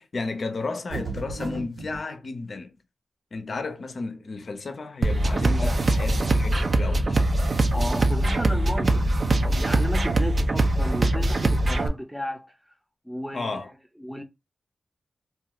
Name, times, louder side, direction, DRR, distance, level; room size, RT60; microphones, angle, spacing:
voice 1, 0.0-2.7 3.3-7.1 13.3-13.7, left 3 dB, 65° left, 0.6 m, -33 dB
sound 1, 0.9-2.0, right 2 dB, 75° right, 1.3 m, -33 dB
sound 2, 5.0-11.9, right 2 dB, 55° right, 0.6 m, -22 dB
voice 2, 7.7-9.1 9.3-12.5 13.0-13.6 14.0-14.2, equal, 5° right, 0.7 m, -33 dB
2.6 x 2.4 x 3.5 m
cardioid pair, 45°, 0 cm